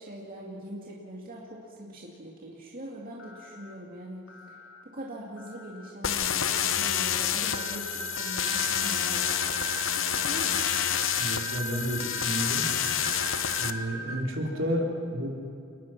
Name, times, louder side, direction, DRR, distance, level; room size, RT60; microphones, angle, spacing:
voice 1, 0.0-10.9, right 1 dB, 45° right, -4 dB, 2.5 m, -42 dB
sound 1, 3.2-3.8 4.3-4.8 5.4-5.9 6.4-7.0 7.5-8.1 8.6-9.2 9.7-11.6, left 3 dB, 85° left, 2.2 m, -52 dB
sound 2, 6.0-13.7, left 10 dB, 70° left, 0.9 m, -28 dB
sound 3, 7.4-14.2, right 2 dB, 90° right, 1.8 m, -38 dB
voice 2, 11.2-12.7 13.6-15.3, equal, 70° right, -1 dB, 4.1 m, -31 dB
28.5 x 20.5 x 6.1 m, 2.5 s
head